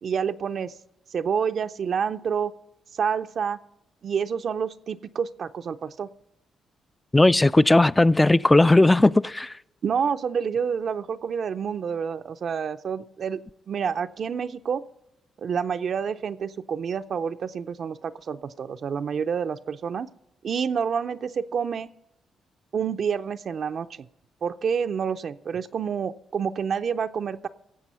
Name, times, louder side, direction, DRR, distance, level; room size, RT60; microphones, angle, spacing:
voice 1, 0.0-0.7 1.1-2.5 2.9-3.6 4.0-6.1 9.8-13.4 13.7-14.8 15.4-20.1 20.4-21.9 22.7-23.9 24.4-27.5, right 7 dB, 60° right, 0.4 m, -28 dB
voice 2, 7.1-9.5, left 2 dB, 15° left, 0.3 m, -17 dB
16.5 x 7.3 x 5.6 m
supercardioid pair, 65°, 0 cm